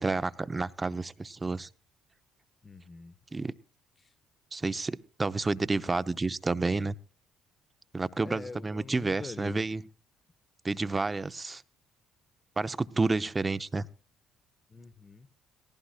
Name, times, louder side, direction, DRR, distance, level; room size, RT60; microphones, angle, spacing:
voice 1, 0.0-1.7 3.3-3.5 4.5-6.9 7.9-9.8 10.6-11.6 12.6-13.9, right 3 dB, 25° right, 0.7 m, -30 dB
voice 2, 2.6-3.2 4.0-4.1 8.2-9.6 14.7-15.3, left 4 dB, 30° left, 1.0 m, -44 dB
18.5 x 15.5 x 2.5 m
hypercardioid pair, 55°, 0 cm